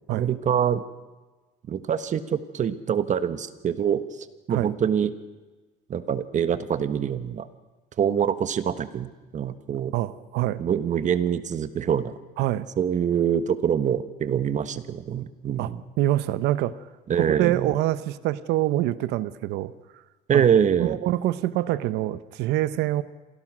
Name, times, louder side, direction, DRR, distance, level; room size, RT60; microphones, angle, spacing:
voice 1, 0.1-0.8 1.7-4.0 4.5-5.1 5.9-7.5 8.0-9.9 10.6-12.1 12.8-15.8 17.1-17.7 20.3-21.0, right 8 dB, 45° right, 12 dB, 1.3 m, -25 dB
voice 2, 9.9-10.6 12.4-12.7 15.6-15.7 16.0-16.8 17.2-19.7 20.3-20.4 20.8-23.0, right 15 dB, 90° right, 15 dB, 1.0 m, -25 dB
27.0 x 17.0 x 6.3 m, 1.2 s
cardioid pair, 110°, 17 cm